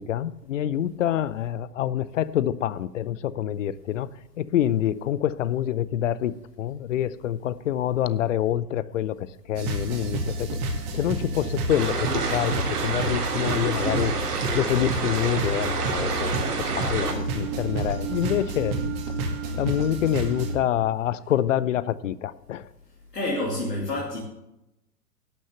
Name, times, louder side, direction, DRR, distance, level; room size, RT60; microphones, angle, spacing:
voice 1, 0.0-4.1 4.4-10.6 10.9-14.1 14.5-16.4 16.7-18.8 19.6-22.7, left 11 dB, 50° left, 18 dB, 0.6 m, -26 dB
sound 1, 9.5-20.6, right 2 dB, 35° right, 2.2 m, -30 dB
sound 2, 11.7-17.1, right 4 dB, 70° right, 2.9 m, -29 dB
voice 2, 23.1-24.2, left 1 dB, 85° left, -4 dB, 2.9 m, -28 dB
11.5 x 6.4 x 7.7 m, 0.90 s
figure-of-eight pair, 115°, 47 cm